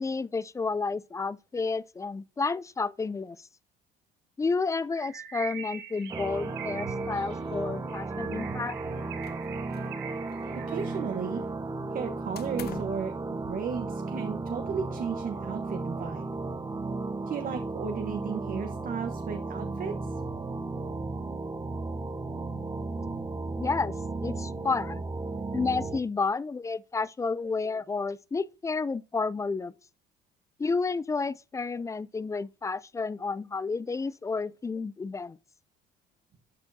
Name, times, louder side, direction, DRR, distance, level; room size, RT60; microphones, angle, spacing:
voice 1, 0.0-3.4 4.4-8.8 23.6-23.9 24.2-25.0 25.5-29.7 30.6-35.4, left 4 dB, 15° left, 0.3 m, -31 dB
Bird, 4.9-11.2, right 9 dB, 70° right, 1.5 m, -44 dB
sound 1, 6.1-26.0, right 3 dB, 20° right, 0.7 m, -34 dB
sound 2, 9.2-10.0 10.3-11.2 12.3-13.1, left 10 dB, 55° left, 0.7 m, -46 dB
voice 2, 10.5-11.4 11.9-13.1 13.4-16.2 17.3-20.1, right 6 dB, 45° right, 1.0 m, -34 dB
11.5 x 4.4 x 2.7 m
cardioid pair, 90°, 19 cm